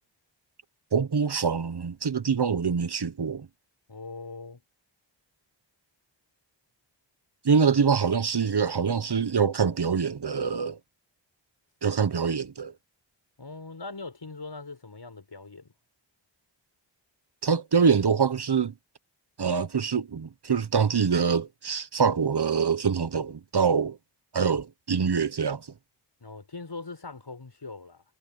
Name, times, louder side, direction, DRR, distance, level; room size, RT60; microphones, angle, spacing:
voice 1, 0.9-3.5 7.4-10.8 11.8-12.7 17.4-18.7 19.4-24.0 24.3-25.7, right 6 dB, 60° right, 1.1 m, -25 dB
voice 2, 3.9-4.6 13.4-15.7 26.2-28.0, left 3 dB, 65° left, 6.6 m, -41 dB
wide cardioid pair, 55°, 45 cm